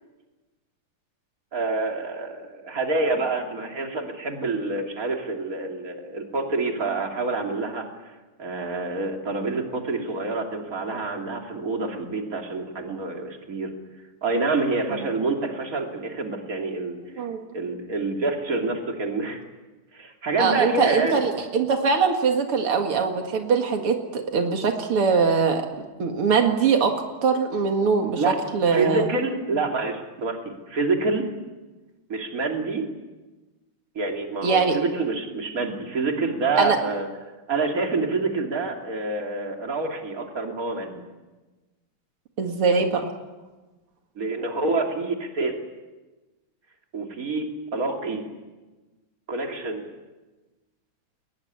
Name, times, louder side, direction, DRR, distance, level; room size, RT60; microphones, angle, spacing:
voice 1, 1.5-8.1 8.4-13.7 14.2-17.0 17.5-19.4 19.9-21.2 28.2-28.4 28.7-31.3 32.1-32.9 34.0-37.1 37.5-41.0 44.2-45.5 46.9-48.3 49.3-49.9, right 3 dB, 40° right, 2 dB, 3.3 m, -27 dB
voice 2, 20.4-25.7 26.0-29.1 34.4-34.8 36.6-36.8 42.4-43.1, right 5 dB, 85° right, 4 dB, 2.9 m, -22 dB
21.5 x 21.0 x 9.7 m, 1.2 s
omnidirectional pair, 2.4 m